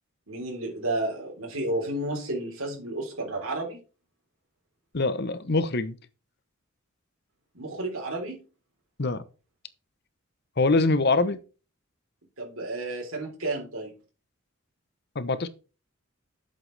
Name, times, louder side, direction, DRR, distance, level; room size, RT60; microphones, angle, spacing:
voice 1, 0.3-3.8 7.5-8.4 12.4-13.9, right 2 dB, 85° right, 3.8 m, -31 dB
voice 2, 4.9-6.0 9.0-9.2 10.6-11.4 15.1-15.5, left 3 dB, 50° left, 0.9 m, -24 dB
11.0 x 7.8 x 3.4 m
head